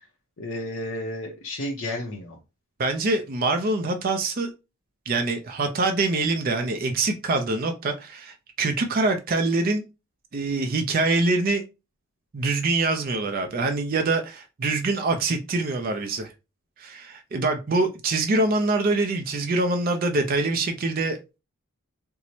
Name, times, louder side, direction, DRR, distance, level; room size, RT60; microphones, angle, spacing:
voice 1, 0.4-2.4, left 1 dB, 55° left, -2 dB, 0.6 m, -32 dB
voice 2, 2.8-4.5 5.1-9.8 10.3-11.6 12.3-16.3 16.8-21.4, right 3 dB, 40° right, 5 dB, 0.4 m, -24 dB
4.4 x 2.1 x 2.6 m, 0.27 s
head